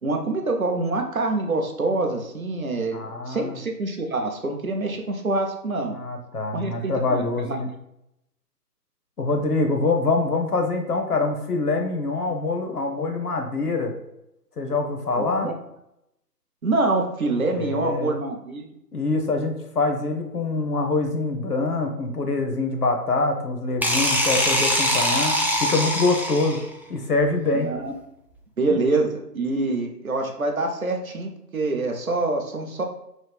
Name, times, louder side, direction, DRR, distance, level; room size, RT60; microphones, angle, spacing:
voice 1, 0.0-6.0 6.5-7.6 15.2-15.5 16.6-18.7 27.5-27.9 28.6-32.8, right 2 dB, 60° right, 3 dB, 0.6 m, -26 dB
voice 2, 2.9-3.6 5.9-7.7 9.2-13.9 14.6-15.5 17.5-18.1 18.9-25.3 25.6-26.6 26.9-27.7 28.7-28.8, left 3 dB, 65° left, 4 dB, 0.7 m, -25 dB
sound 1, 23.8-26.7, equal, 5° right, 0.3 m, -22 dB
3.1 x 2.4 x 3.2 m, 0.83 s
figure-of-eight pair, 155°, 49 cm